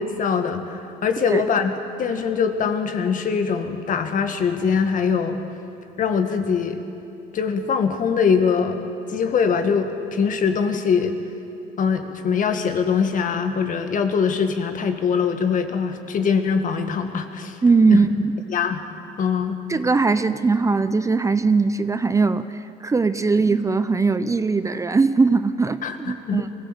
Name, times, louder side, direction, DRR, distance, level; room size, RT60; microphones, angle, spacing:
voice 1, 0.0-1.7 2.0-5.4 6.0-6.8 7.3-8.8 9.1-11.2 11.8-17.6 17.9-18.0 18.5-18.8 19.2-19.6 25.8-26.4, left 6 dB, 50° left, 7 dB, 1.8 m, -22 dB
voice 2, 17.6-18.3 19.7-25.8 26.1-26.5, right 4 dB, 20° right, 12 dB, 0.6 m, -20 dB
23.0 x 16.5 x 8.1 m, 2.7 s
cardioid pair, 110°, 17 cm